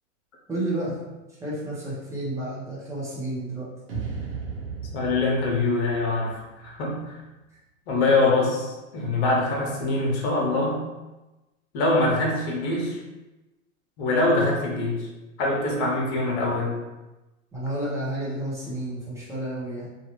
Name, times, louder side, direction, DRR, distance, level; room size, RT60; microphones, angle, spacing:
voice 1, 0.5-1.0 1.4-3.7 17.5-19.9, right 1 dB, 5° right, -7 dB, 0.8 m, -31 dB
sound 1, 3.9-7.1, right 5 dB, 60° right, 1.2 m, -36 dB
voice 2, 4.9-7.2 7.9-10.8 11.7-13.0 14.0-15.1 15.4-16.8, left 2 dB, 50° left, -1 dB, 0.9 m, -24 dB
2.9 x 2.4 x 3.0 m, 1.1 s
hypercardioid pair, 135°, 40 cm